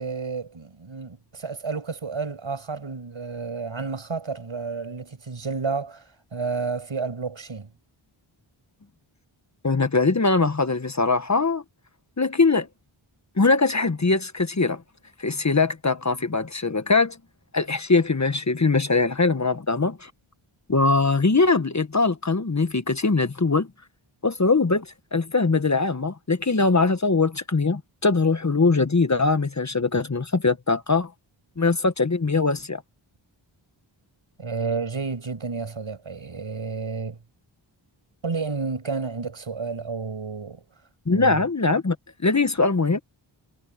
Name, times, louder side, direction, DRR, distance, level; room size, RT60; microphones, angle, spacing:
voice 1, 0.0-7.7 34.4-37.2 38.2-40.6 41.1-41.4, right 4 dB, 70° right, 6.6 m, -31 dB
voice 2, 9.6-11.6 12.2-12.7 13.4-14.8 15.2-17.2 17.5-20.1 20.7-23.7 24.2-31.1 31.6-32.8 41.1-42.0 42.2-43.0, left 3 dB, 35° left, 1.3 m, -22 dB
wide cardioid pair, 65°, 49 cm